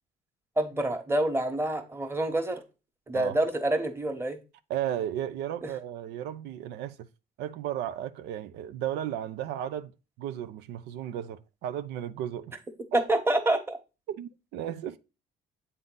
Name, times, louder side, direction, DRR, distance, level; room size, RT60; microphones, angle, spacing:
voice 1, 0.6-2.6 3.1-4.4 5.6-5.7 12.9-13.8, right 1 dB, 15° right, 1.2 m, -27 dB
voice 2, 4.7-7.1 7.4-9.9 10.2-12.6 14.1-15.0, right 11 dB, 85° right, 0.5 m, -34 dB
8.0 x 3.7 x 3.8 m
cardioid pair, 110°, 17 cm